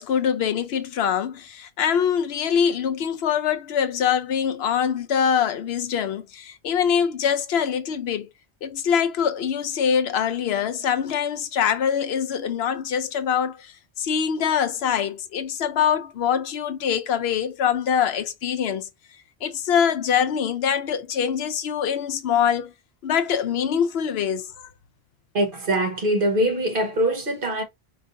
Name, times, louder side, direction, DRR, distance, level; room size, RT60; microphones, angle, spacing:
voice 1, 0.0-8.3 8.6-18.9 19.4-22.7 23.0-24.7, left 8 dB, 75° left, 0.8 m, -24 dB
voice 2, 25.3-27.6, right 1 dB, 55° right, 1.4 m, -23 dB
4.7 x 2.5 x 2.6 m
omnidirectional pair, 1.1 m